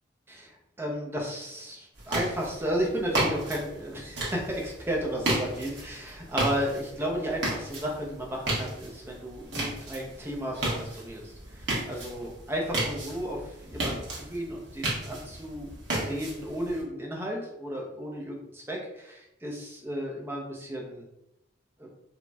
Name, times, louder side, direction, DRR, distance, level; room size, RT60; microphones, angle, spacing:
voice 1, 0.3-15.7 15.9-21.0 21.8-21.9, equal, 10° right, -2 dB, 0.5 m, -34 dB
sound 1, 1.9-16.8, right 1 dB, 65° right, 1.0 m, -34 dB
4.0 x 2.1 x 2.2 m, 0.86 s
head